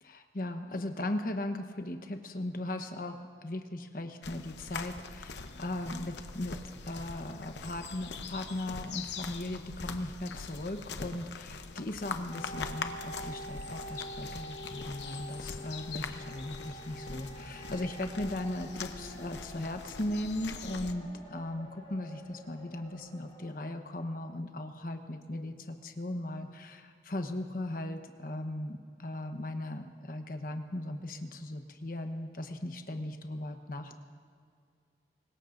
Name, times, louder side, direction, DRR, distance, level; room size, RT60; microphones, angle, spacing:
voice 1, 0.0-6.6 6.8-34.0, left 1 dB, 50° left, 6 dB, 1.0 m, -38 dB
sound 1, 4.2-20.9, left 4 dB, 80° left, 0.8 m, -43 dB
sound 2, 12.3-23.5, equal, 35° left, 2.9 m, -47 dB
24.5 x 20.5 x 2.6 m, 2.2 s
head